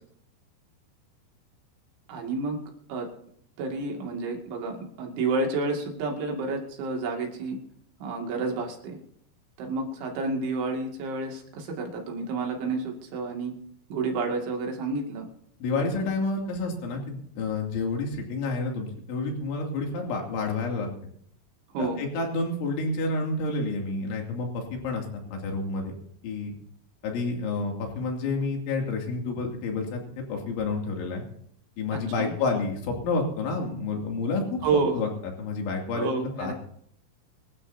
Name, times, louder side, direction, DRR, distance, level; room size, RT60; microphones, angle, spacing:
voice 1, 2.1-2.6 2.9-3.1 3.6-7.6 8.0-9.0 9.6-13.5 13.9-15.3 15.9-16.1 21.7-22.0 31.9-32.3 34.6-35.0 35.9-36.5, right 3 dB, 65° right, 2 dB, 4.5 m, -30 dB
voice 2, 15.6-20.9 21.8-25.1 25.3-25.9 26.2-26.5 27.0-31.2 31.8-34.7 34.9-35.1 35.4-36.1 36.4-36.5, left 3 dB, 70° left, 1 dB, 5.0 m, -29 dB
24.5 x 13.0 x 2.8 m, 0.66 s
omnidirectional pair, 5.9 m